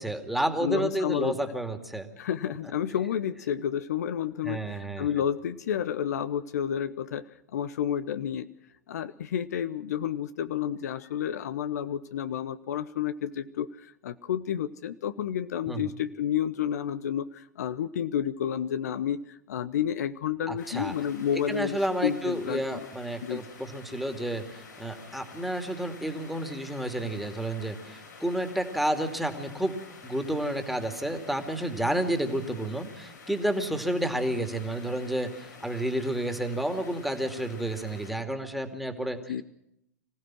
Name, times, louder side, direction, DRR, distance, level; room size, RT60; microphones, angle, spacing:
voice 1, 0.0-2.1 4.4-5.1 15.7-15.8 20.5-20.9 21.5-29.8 30.0-39.3, right 1 dB, ahead, 6 dB, 2.5 m, -30 dB
voice 2, 0.6-1.4 2.2-8.5 8.9-22.8 23.2-23.4 39.3-39.4, left 9 dB, 65° left, 12 dB, 0.9 m, -30 dB
sound 1, 20.6-38.1, left 4 dB, 85° left, 7.2 m, -49 dB
26.0 x 16.0 x 6.2 m, 0.77 s
figure-of-eight pair, 100°, 9 cm